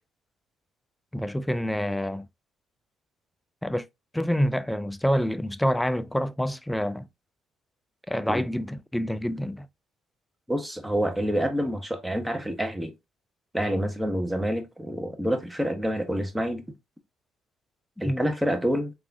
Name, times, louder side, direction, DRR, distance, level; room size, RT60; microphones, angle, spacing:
voice 1, 1.1-2.3 3.6-3.8 4.1-7.1 8.1-9.7 18.0-18.2, equal, 5° left, 0.3 m, -27 dB
voice 2, 10.5-12.9 13.5-16.6 18.0-18.9, equal, 10° right, 0.8 m, -27 dB
3.4 x 2.4 x 2.5 m
hypercardioid pair, 50°, 0 cm